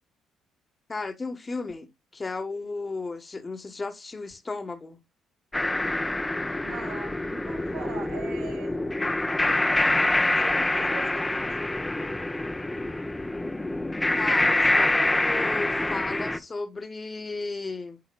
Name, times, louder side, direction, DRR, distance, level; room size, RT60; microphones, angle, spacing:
voice 1, 0.9-5.0 14.1-18.0, left 3 dB, 30° left, 1.4 m, -35 dB
sound 1, 5.5-16.4, left 2 dB, 15° left, 0.8 m, -26 dB
voice 2, 6.6-8.9 10.2-11.6, right 6 dB, 70° right, 2.3 m, -42 dB
11.5 x 4.1 x 2.4 m
hypercardioid pair, 50°, 0 cm